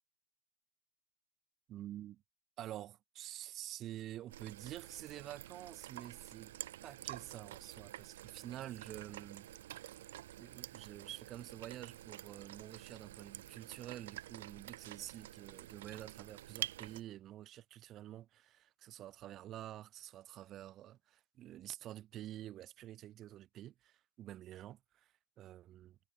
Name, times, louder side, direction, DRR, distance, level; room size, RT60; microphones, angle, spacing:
voice 1, 1.7-2.2 2.6-9.5 10.4-26.0, right 13 dB, 35° right, 2.8 m, -49 dB
sound 1, 4.3-17.0, right 14 dB, 65° right, 0.9 m, -49 dB
hypercardioid pair, 105°, 0 cm